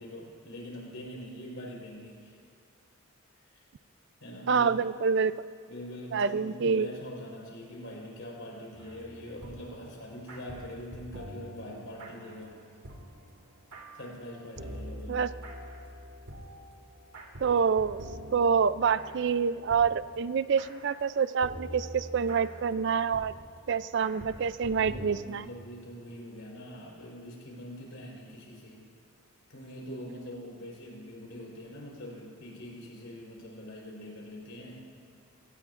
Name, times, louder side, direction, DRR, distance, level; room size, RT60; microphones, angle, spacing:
voice 1, 0.0-2.4 4.2-4.8 5.7-12.6 13.9-15.3 24.7-28.9 29.5-34.9, equal, 65° left, -2 dB, 4.3 m, -43 dB
voice 2, 4.5-5.5 6.1-6.9 15.1-15.3 17.4-18.0 18.3-23.3 23.7-25.4, right 6 dB, 55° right, 15 dB, 0.4 m, -27 dB
sound 1, 8.7-21.1 21.4-25.5, equal, 85° right, 2.1 m, -46 dB
24.0 x 18.0 x 2.5 m, 2.3 s
head